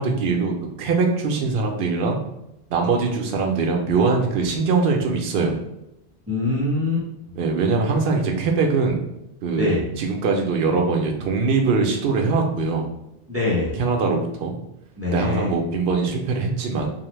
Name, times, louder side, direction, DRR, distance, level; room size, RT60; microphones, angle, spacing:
voice 1, 0.0-2.2 2.7-5.5 7.3-9.0 9.4-12.9 13.7-14.5 15.1-16.9, right 4 dB, 70° right, 2 dB, 0.8 m, -22 dB
voice 2, 6.3-7.1 9.6-9.8 13.3-13.7 15.0-15.5, left 2 dB, 25° right, -6 dB, 0.3 m, -23 dB
2.7 x 2.0 x 3.0 m, 0.86 s
omnidirectional pair, 1.1 m